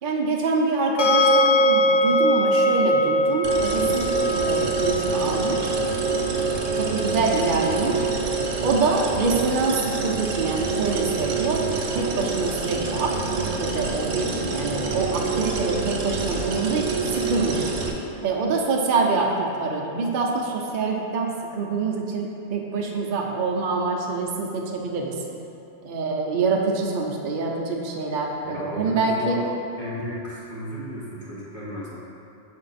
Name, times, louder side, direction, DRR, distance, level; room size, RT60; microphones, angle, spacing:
voice 1, 0.0-5.8 6.7-8.1 8.6-11.7 11.9-17.7 18.2-25.1 25.8-29.4, right 3 dB, 55° right, -1 dB, 0.6 m, -25 dB
sound 1, 1.0-14.0, equal, 55° left, 0.5 m, -24 dB
sound 2, 3.4-17.9, right 4 dB, 80° right, 1.1 m, -27 dB
voice 2, 28.4-29.5 29.8-31.9, left 1 dB, 40° left, -7 dB, 1.1 m, -34 dB
6.5 x 4.4 x 4.1 m, 2.9 s
omnidirectional pair, 1.3 m